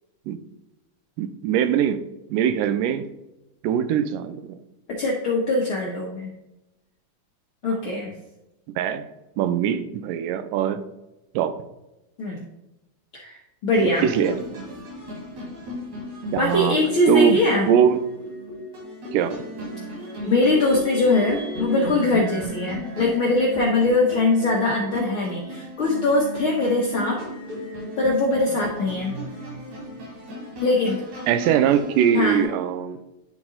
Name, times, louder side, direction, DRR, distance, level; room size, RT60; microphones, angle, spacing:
voice 1, 1.2-2.0 2.3-3.1 3.6-4.4 8.7-9.0 9.4-10.8 11.3-11.5 13.8-14.7 16.3-16.8 17.1-17.4 17.7-18.0 19.1-19.4 31.3-33.0, right 9 dB, 90° right, 10 dB, 2.2 m, -21 dB
voice 2, 4.9-6.3 7.6-8.1 12.2-12.5 13.1-14.0 16.4-17.7 20.3-27.2 28.0-29.1 30.6-31.0 32.1-32.5, left 2 dB, 75° left, -2 dB, 1.2 m, -22 dB
sound 1, 13.7-32.4, equal, 60° right, 4.4 m, -35 dB
10.5 x 4.1 x 3.7 m, 0.93 s
omnidirectional pair, 3.8 m